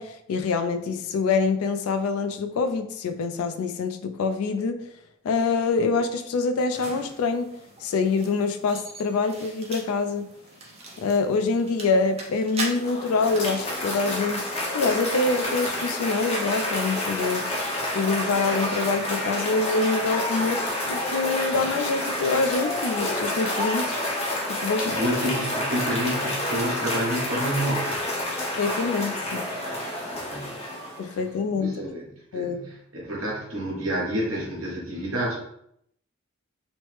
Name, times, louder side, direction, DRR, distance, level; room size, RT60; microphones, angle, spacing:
voice 1, 0.0-4.8 5.2-7.5 7.8-10.3 11.0-14.5 14.7-17.5 17.9-20.6 20.9-24.0 24.5-25.0 28.6-29.4 31.0-31.8 32.3-32.6, left 4 dB, 85° left, 8 dB, 0.3 m, -25 dB
sound 1, 6.7-18.0, right 2 dB, 30° right, 0.5 m, -42 dB
Cheering / Applause, 12.6-31.2, left 1 dB, 30° left, 0.6 m, -29 dB
voice 2, 24.6-28.0 30.1-30.5 31.6-32.0 32.3-35.3, equal, 80° right, -4 dB, 1.0 m, -29 dB
3.1 x 2.0 x 3.1 m, 0.73 s
head